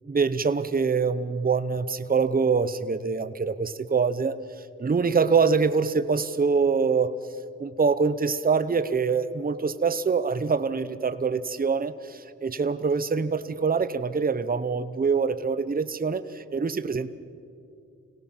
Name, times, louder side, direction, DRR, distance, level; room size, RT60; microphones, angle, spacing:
voice 1, 0.1-4.3 4.8-7.1 7.6-17.1, right 5 dB, 25° right, 12 dB, 0.9 m, -24 dB
25.5 x 18.0 x 7.4 m, 2.4 s
cardioid pair, 75°, 33 cm